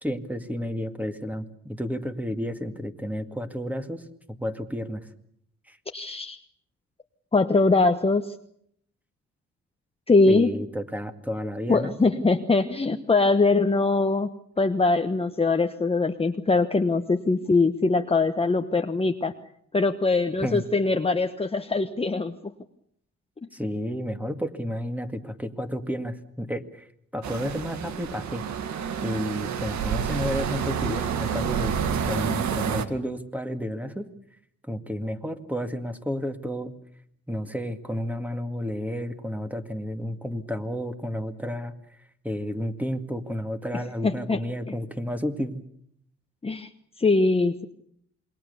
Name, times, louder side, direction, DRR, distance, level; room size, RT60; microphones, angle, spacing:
voice 1, 0.0-4.0 4.3-5.0 5.7-5.8 10.3-11.9 20.4-20.6 23.5-26.9 27.1-28.5 29.0-31.8 32.0-34.1 34.7-36.7 37.3-41.7 42.2-45.6, equal, 5° right, 7 dB, 2.1 m, -31 dB
voice 2, 5.9-6.4 7.3-8.3 10.1-10.5 11.7-14.3 14.6-19.3 19.7-22.3 44.0-44.4 46.4-46.7 47.0-47.7, left 3 dB, 20° left, 7 dB, 1.1 m, -22 dB
sound 1, 27.2-32.9, right 7 dB, 70° right, 2.0 m, -29 dB
27.5 x 21.5 x 7.0 m, 0.69 s
cardioid pair, 90°, 30 cm